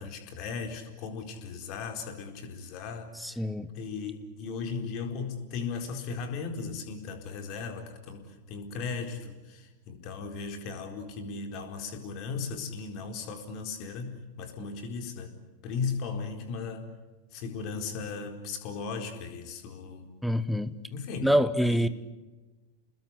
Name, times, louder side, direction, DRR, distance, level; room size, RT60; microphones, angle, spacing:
voice 1, 0.0-3.1 3.7-9.4 9.9-15.3 15.6-16.9 17.3-20.1 20.9-21.3 21.7-21.9, left 5 dB, 40° left, 5 dB, 4.3 m, -36 dB
voice 2, 3.1-3.7 20.2-20.7 21.2-21.9, equal, ahead, 13 dB, 1.3 m, -26 dB
29.5 x 21.0 x 8.2 m, 1.2 s
figure-of-eight pair, 90°, 0 cm